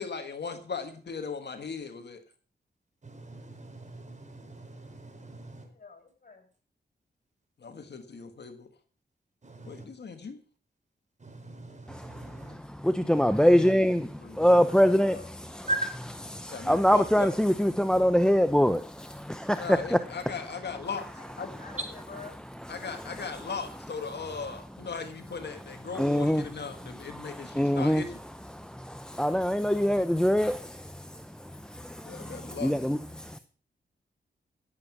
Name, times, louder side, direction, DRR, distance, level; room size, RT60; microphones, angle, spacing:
voice 1, 0.0-2.2 7.6-8.7 9.6-10.4 14.2-14.4 16.5-17.3 19.6-21.1 21.4-21.5 22.7-28.2 32.0-32.7, left 5 dB, 65° left, 1.6 m, -38 dB
voice 2, 3.0-5.7 9.4-9.9 11.2-12.6 15.7-15.9, right 1 dB, 40° right, 4.5 m, -38 dB
voice 3, 5.7-6.5 14.4-14.7 15.0-15.3 15.6-15.7 21.1-22.4, left 4 dB, 45° left, 5.9 m, -48 dB
voice 4, 11.9-15.2 15.5-15.6 16.3-20.0 21.4-21.6 22.8-23.3 25.9-26.5 26.7-28.0 28.5-33.4, equal, 5° left, 0.8 m, -25 dB
16.0 x 8.0 x 6.1 m
cardioid pair, 60°, 19 cm